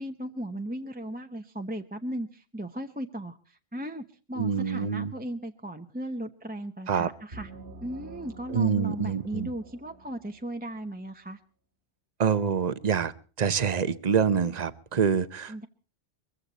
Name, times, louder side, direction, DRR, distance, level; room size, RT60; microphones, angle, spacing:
voice 1, 0.0-7.5 7.8-11.4 15.5-15.7, right 1 dB, 10° right, 5 dB, 0.9 m, -36 dB
voice 2, 4.4-5.1 6.9-7.1 8.5-9.5 12.2-13.1 13.4-15.7, right 7 dB, 40° right, 14 dB, 1.0 m, -26 dB
sound 1, 7.3-10.9, right 2 dB, 65° right, 2.1 m, -47 dB
22.5 x 15.5 x 4.1 m, 0.38 s
omnidirectional pair, 1.1 m